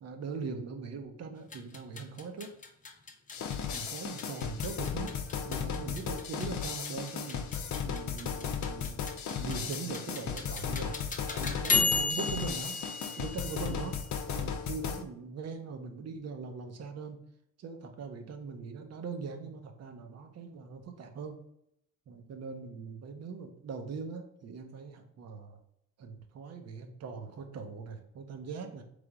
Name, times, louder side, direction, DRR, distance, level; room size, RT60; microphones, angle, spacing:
voice 1, 0.0-2.5 3.7-5.1 5.4-9.0 9.3-11.0 11.3-12.8 13.2-14.0 14.3-17.2 17.6-21.4 22.1-25.6 26.0-28.8, right 5 dB, 55° right, 5 dB, 0.8 m, -41 dB
sound 1, 1.4-14.1, left 4 dB, 25° left, 0.6 m, -36 dB
sound 2, 3.3-15.0, left 7 dB, 70° left, 0.6 m, -36 dB
3.8 x 3.4 x 3.5 m, 0.75 s
cardioid pair, 90°, 30 cm